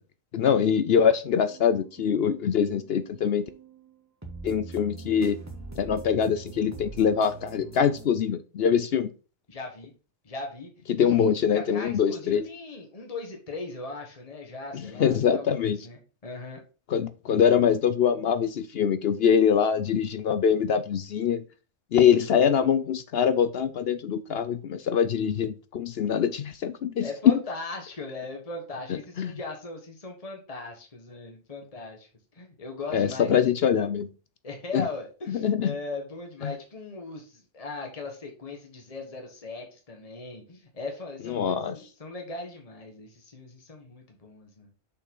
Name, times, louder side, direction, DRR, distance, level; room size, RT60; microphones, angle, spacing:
voice 1, 0.3-3.4 4.4-5.4 5.8-9.1 10.9-12.4 14.7-15.8 16.9-21.4 21.9-27.1 29.2-29.3 32.9-34.1 34.7-34.8 35.3-35.7 36.4-36.5 41.3-41.8, left 7 dB, 60° left, 11 dB, 0.8 m, -24 dB
sound 1, 1.4-8.1, right 4 dB, 15° right, 1.5 m, -44 dB
voice 2, 9.5-9.9 10.2-16.6 27.0-32.1 32.3-33.5 34.4-44.7, left 3 dB, 30° left, 2 dB, 1.5 m, -39 dB
6.6 x 5.6 x 3.8 m, 0.34 s
omnidirectional pair, 1.3 m